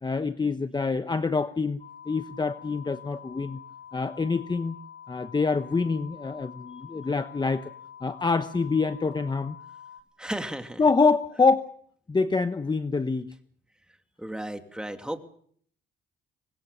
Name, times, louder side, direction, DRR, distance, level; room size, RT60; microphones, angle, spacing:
voice 1, 0.0-1.8 2.1-3.6 3.9-4.8 5.1-7.7 8.0-9.5 10.8-11.7 12.1-13.3, left 4 dB, 20° left, 10 dB, 1.0 m, -26 dB
sound 1, 1.8-10.0, left 8 dB, 45° left, 5.0 m, -46 dB
voice 2, 10.2-10.8 14.2-15.2, right 1 dB, 5° right, 6 dB, 2.7 m, -34 dB
25.0 x 20.0 x 6.9 m, 0.62 s
cardioid pair, 90°, 20 cm